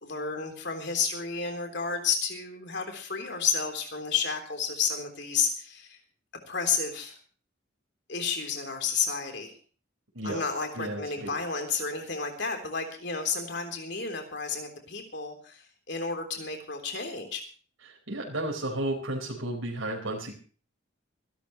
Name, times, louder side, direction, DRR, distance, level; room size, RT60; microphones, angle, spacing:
voice 1, 0.0-6.0 6.5-7.2 8.1-9.6 10.2-17.4, left 5 dB, 60° left, 4 dB, 3.5 m, -31 dB
voice 2, 10.7-11.3 17.8-20.3, right 1 dB, 90° right, -1 dB, 4.6 m, -33 dB
25.5 x 12.0 x 3.1 m, 0.39 s
head